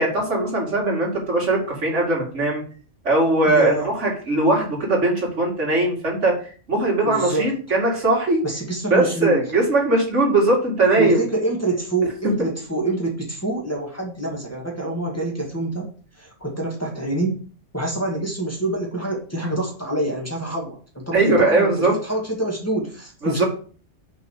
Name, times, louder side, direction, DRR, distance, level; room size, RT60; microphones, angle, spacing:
voice 1, 0.0-2.6 3.0-6.3 6.7-8.4 8.9-11.2 21.1-21.9 23.2-23.4, right 2 dB, 70° right, -1 dB, 2.8 m, -20 dB
voice 2, 3.4-3.9 7.0-7.5 8.4-9.4 11.0-15.9 16.2-17.4 17.7-23.4, right 2 dB, 10° left, -2 dB, 2.0 m, -26 dB
5.5 x 5.4 x 6.4 m, 0.41 s
omnidirectional pair, 1.3 m